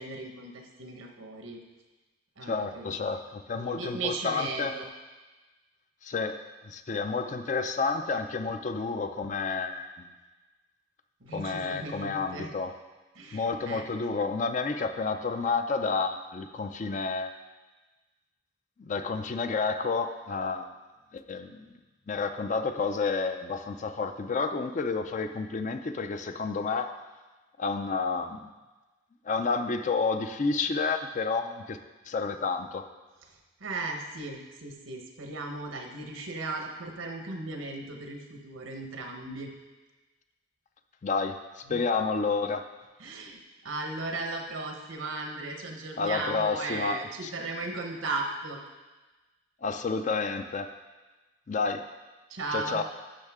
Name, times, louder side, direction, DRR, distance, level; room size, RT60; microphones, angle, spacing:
voice 1, 0.0-1.6 2.4-3.0 3.5-4.9 11.2-12.5 13.1-13.9 33.6-39.5 41.7-41.8 43.0-48.6 52.3-52.8, right 3 dB, 90° right, 3 dB, 1.1 m, -36 dB
voice 2, 2.4-4.8 6.0-10.1 11.3-12.8 13.3-17.3 18.8-20.7 21.1-21.7 22.1-26.9 27.6-28.5 29.3-31.8 32.1-32.9 41.0-42.7 46.0-47.3 49.6-50.7 51.5-51.8 52.5-52.8, left 4 dB, 40° left, 8 dB, 0.4 m, -30 dB
13.0 x 5.5 x 3.6 m, 1.2 s
head